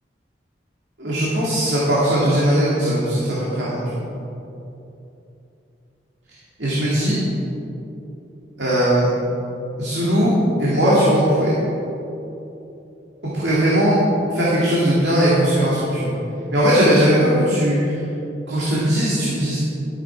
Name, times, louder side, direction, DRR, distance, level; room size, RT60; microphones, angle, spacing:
voice 1, 1.0-4.0 6.6-7.2 8.6-9.1 9.8-10.3 10.6-11.5 13.2-14.0 14.3-16.1 16.5-18.0 18.5-19.6, equal, 75° right, -8 dB, 2.5 m, -19 dB
13.5 x 9.1 x 4.7 m, 2.9 s
head